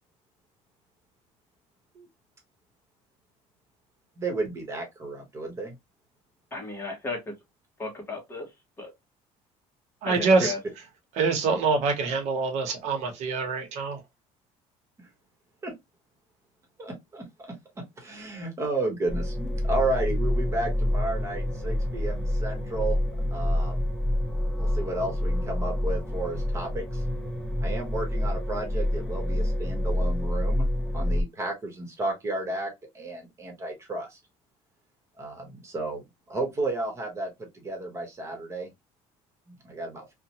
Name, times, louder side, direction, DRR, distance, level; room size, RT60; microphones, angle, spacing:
voice 1, 4.2-5.7 15.0-15.1 15.6-15.7 16.8-23.0 23.3-23.9 24.5-27.0 27.6-30.7 30.9-34.2 35.2-38.7 39.5-40.1, right 2 dB, 20° right, 1.0 m, -33 dB
voice 2, 6.5-7.3 7.8-8.5 8.8-8.9 10.0-10.6, left 3 dB, 20° left, 1.0 m, -34 dB
voice 3, 10.0-10.5 11.2-14.0, right 4 dB, 65° right, 0.9 m, -25 dB
sound 1, 19.1-31.2, left 1 dB, ahead, 0.5 m, -27 dB
2.8 x 2.2 x 2.8 m
cardioid pair, 155°, 13 cm